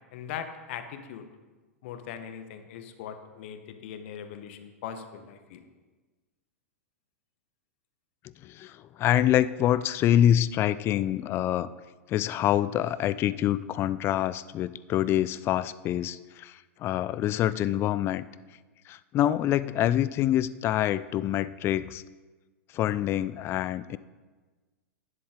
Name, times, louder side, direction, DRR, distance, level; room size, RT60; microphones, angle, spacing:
voice 1, 0.1-1.3 1.8-5.6, left 8 dB, 55° left, 9 dB, 1.1 m, -40 dB
voice 2, 8.4-11.7 12.1-18.2 18.9-22.0 22.7-24.0, left 12 dB, 30° left, 17 dB, 0.4 m, -26 dB
11.0 x 10.5 x 3.7 m, 1.3 s
figure-of-eight pair, 95°, 8 cm